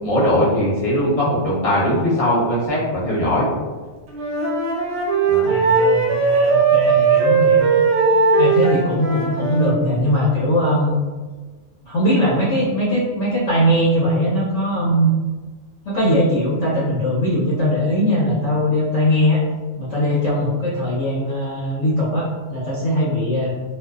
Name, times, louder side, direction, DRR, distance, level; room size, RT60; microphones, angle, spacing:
voice 1, 0.0-3.5 5.3-5.5, equal, 35° left, -7 dB, 0.8 m, -19 dB
Wind instrument woodwind instrument, 4.1-9.8, right 4 dB, 65° right, 0.8 m, -17 dB
voice 2, 5.4-7.7 8.1-11.0 11.9-15.1 15.8-19.4 19.8-23.6, equal, 70° left, -7 dB, 1.0 m, -20 dB
2.5 x 2.3 x 2.3 m, 1.3 s
omnidirectional pair, 1.3 m